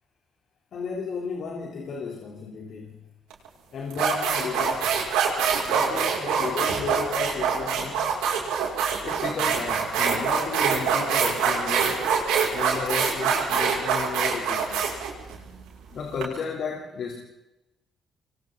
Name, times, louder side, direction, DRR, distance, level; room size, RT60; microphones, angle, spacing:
voice 1, 0.7-3.0 3.7-5.0 5.6-8.1 9.0-12.0 12.5-14.9 15.9-17.2, left 5 dB, 65° left, 1 dB, 3.7 m, -33 dB
sound 1, 3.3-3.5 3.9-16.2, right 6 dB, 80° right, 6.1 m, -24 dB
28.0 x 23.0 x 4.1 m, 0.95 s
hypercardioid pair, 50°, 0 cm